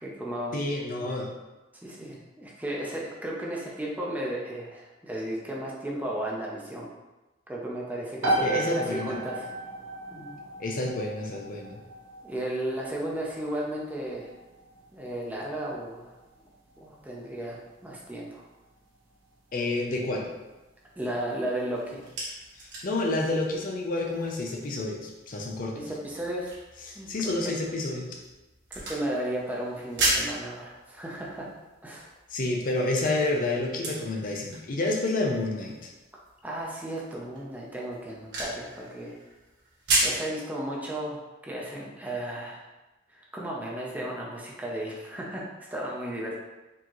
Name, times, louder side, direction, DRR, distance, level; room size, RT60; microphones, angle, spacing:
voice 1, 0.0-0.5 1.8-6.9 7.5-9.5 10.1-10.4 12.2-14.3 14.9-16.1 16.8-18.4 21.0-22.0 25.7-26.5 26.9-27.1 27.4-27.5 28.7-31.5 31.8-32.1 36.4-39.2 40.0-42.6 43.1-45.4 45.7-46.4, right 1 dB, 10° right, -3 dB, 0.5 m, -34 dB
voice 2, 0.5-1.3 8.4-9.2 10.6-11.8 19.5-20.3 22.6-25.9 26.8-28.2 32.3-35.9, left 2 dB, 45° left, 0 dB, 0.6 m, -29 dB
sound 1, 8.2-22.7, right 1 dB, 90° right, 0.8 m, -37 dB
sound 2, 21.7-40.3, right 2 dB, 65° right, 1.2 m, -36 dB
4.4 x 2.8 x 2.9 m, 1.1 s
head